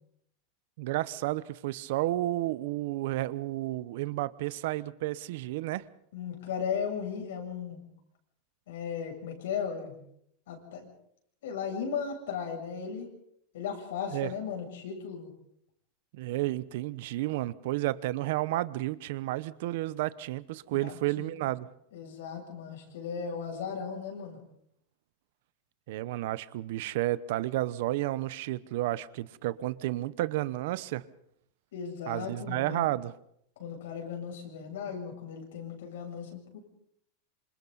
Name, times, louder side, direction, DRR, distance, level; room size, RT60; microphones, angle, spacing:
voice 1, 0.8-5.9 14.1-14.3 16.1-21.7 25.9-31.1 32.1-33.1, right 16 dB, 65° right, 0.9 m, -31 dB
voice 2, 6.1-7.8 8.7-10.0 10.5-10.9 11.4-13.1 13.5-15.3 20.7-21.3 21.9-24.4 31.7-32.9 33.6-36.6, left 7 dB, 85° left, 7.3 m, -36 dB
27.5 x 26.0 x 4.1 m
supercardioid pair, 160°, 0 cm